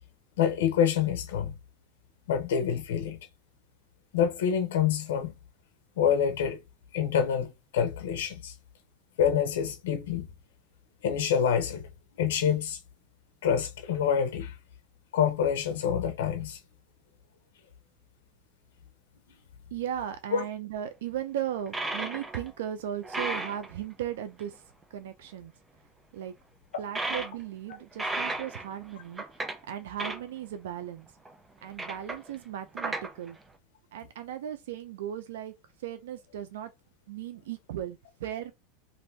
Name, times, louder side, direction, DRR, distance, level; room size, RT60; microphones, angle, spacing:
voice 1, 0.4-1.5 2.3-3.2 4.1-5.3 6.0-6.6 6.9-8.5 9.2-10.3 11.0-11.9 12.2-12.8 13.4-14.5 15.1-16.6 20.3-20.4, left 8 dB, 85° left, 0.7 m, -26 dB
voice 2, 19.7-24.5 24.9-25.5 26.1-26.3 26.8-29.2 29.7-31.1 31.6-33.4 33.9-35.5 35.8-36.7 37.1-38.5, right 10 dB, 90° right, 0.5 m, -36 dB
sound 1, 21.7-22.5 22.8-23.7 24.4-24.5 24.8-24.9 26.9-27.4 27.7-29.6 30.0-30.2 31.1-31.3 31.8-32.3 32.8-33.3, right 2 dB, 10° right, 0.4 m, -34 dB
2.7 x 2.6 x 3.3 m
supercardioid pair, 150°, 0 cm